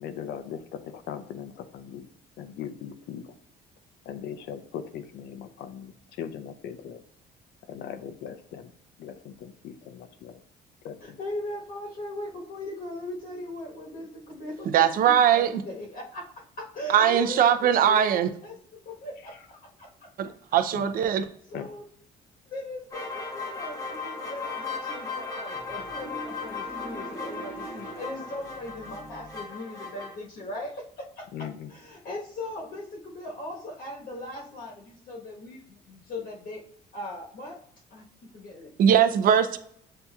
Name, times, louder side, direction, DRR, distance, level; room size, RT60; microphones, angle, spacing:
voice 1, 0.0-2.1 2.4-3.2 4.1-5.9 6.2-7.0 7.7-8.7 9.0-10.4 10.8-11.2 19.2-19.3 20.7-20.9 21.5-21.7 31.3-31.7, left 8 dB, 75° left, 10 dB, 0.6 m, -39 dB
voice 2, 11.0-14.7 15.0-16.3 16.6-20.1 21.0-21.8 22.5-36.6 36.9-37.6 37.9-38.0 38.3-38.7 39.1-39.2, left 1 dB, 60° left, -2 dB, 1.2 m, -39 dB
voice 3, 14.7-15.5 16.9-18.3 20.2-21.3 38.8-39.6, right 9 dB, 55° right, 10 dB, 0.5 m, -21 dB
sound 1, 22.9-30.2, left 4 dB, 20° left, 1.1 m, -37 dB
sound 2, 25.5-29.5, right 3 dB, 10° right, 0.5 m, -44 dB
7.5 x 2.7 x 2.3 m, 0.68 s
cardioid pair, 110°, 17 cm